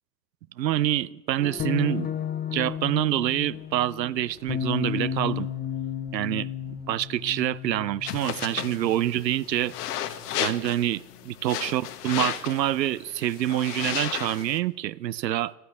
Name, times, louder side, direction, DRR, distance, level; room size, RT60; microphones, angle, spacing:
voice 1, 0.6-2.1 2.5-5.5 6.1-6.5 6.9-9.7 10.4-15.5, right 13 dB, 80° right, 19 dB, 0.6 m, -26 dB
Atmospheric guitar sound, 1.4-10.2, left 9 dB, 20° left, 0.6 m, -33 dB
sound 1, 8.1-14.6, left 11 dB, 65° left, 1.2 m, -34 dB
12.5 x 9.1 x 9.5 m, 1.1 s
figure-of-eight pair, 75°, 50 cm